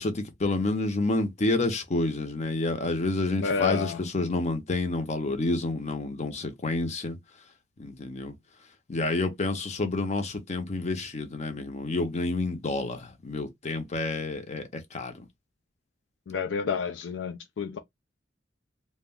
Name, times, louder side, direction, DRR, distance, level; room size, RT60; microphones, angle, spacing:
voice 1, 0.0-7.2 7.8-8.4 8.9-15.3, left 2 dB, 40° left, 0.6 m, -29 dB
voice 2, 3.4-4.0 16.3-17.8, left 6 dB, 75° left, 0.4 m, -29 dB
2.3 x 2.1 x 3.4 m
head